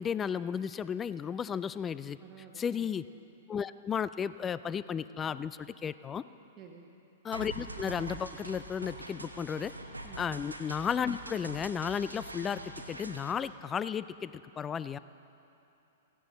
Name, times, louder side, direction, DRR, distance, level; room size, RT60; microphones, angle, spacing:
voice 1, 0.0-2.2 2.6-3.0 3.5-6.2 7.2-9.7 10.2-15.0, left 7 dB, 20° left, 16 dB, 0.3 m, -34 dB
voice 2, 2.2-2.9 6.6-6.9 10.0-10.2, right 7 dB, 25° right, 1 dB, 1.1 m, -51 dB
sound 1, 7.3-13.3, right 2 dB, 80° right, 0.9 m, -44 dB
sound 2, 7.5-12.9, equal, 85° left, 2.0 m, -56 dB
16.5 x 16.0 x 4.0 m, 2.9 s
figure-of-eight pair, 105°, 0 cm